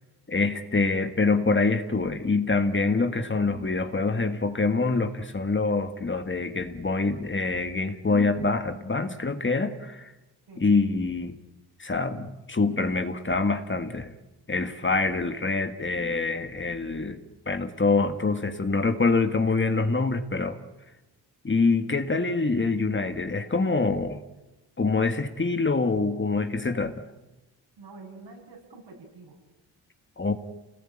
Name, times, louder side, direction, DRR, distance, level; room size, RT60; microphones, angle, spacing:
voice 1, 0.3-10.1 10.6-11.4 11.8-14.1 14.5-17.2 17.5-20.6 21.4-24.2 24.8-27.0 30.2-30.3, left 3 dB, 30° left, 8 dB, 2.0 m, -25 dB
voice 2, 27.8-29.4, right 3 dB, 75° right, 1 dB, 7.9 m, -47 dB
28.0 x 19.0 x 9.0 m, 1.0 s
cardioid pair, 85°, 41 cm